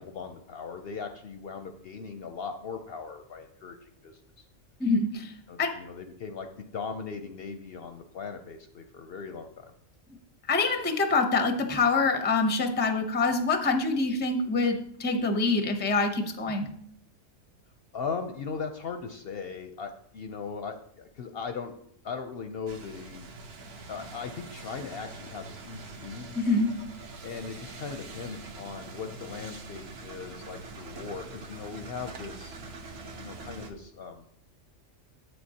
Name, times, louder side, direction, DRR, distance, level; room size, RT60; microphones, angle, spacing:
voice 1, 0.0-4.5 5.5-9.7 17.9-21.7 22.0-23.3 23.9-26.3 27.2-32.6 33.1-34.3, left 5 dB, 60° left, 6 dB, 0.7 m, -39 dB
voice 2, 4.8-5.3 5.6-5.7 10.5-16.7 26.4-26.7, left 3 dB, 15° left, 6 dB, 0.4 m, -25 dB
sound 1, 22.7-33.7, right 3 dB, 55° right, 1.0 m, -44 dB
8.4 x 7.8 x 2.8 m, 0.68 s
omnidirectional pair, 1.4 m